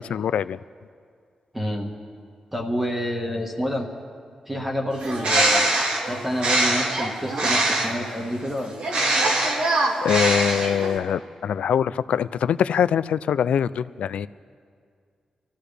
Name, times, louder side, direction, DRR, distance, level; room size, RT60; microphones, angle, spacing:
voice 1, 0.1-0.6 10.0-14.3, left 8 dB, 85° left, 16 dB, 0.3 m, -23 dB
voice 2, 1.5-1.9 2.5-3.9 4.5-8.8, equal, 10° right, 0 dB, 1.4 m, -28 dB
Bird, 4.9-8.1 8.8-11.0, right 2 dB, 70° right, 2.2 m, -23 dB
26.0 x 14.0 x 3.4 m, 2.2 s
wide cardioid pair, 165°, 2 cm